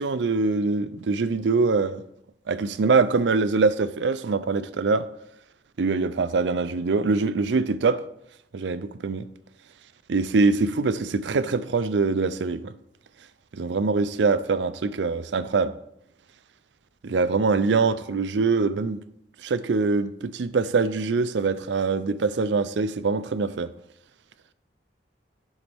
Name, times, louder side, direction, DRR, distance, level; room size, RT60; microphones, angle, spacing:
voice 1, 0.0-2.0 2.5-5.1 5.8-8.0 8.5-9.3 10.1-12.7 13.5-15.7 17.0-19.0 19.4-23.7, right 4 dB, 90° right, 15 dB, 0.5 m, -23 dB
10.0 x 7.3 x 3.5 m, 0.76 s
head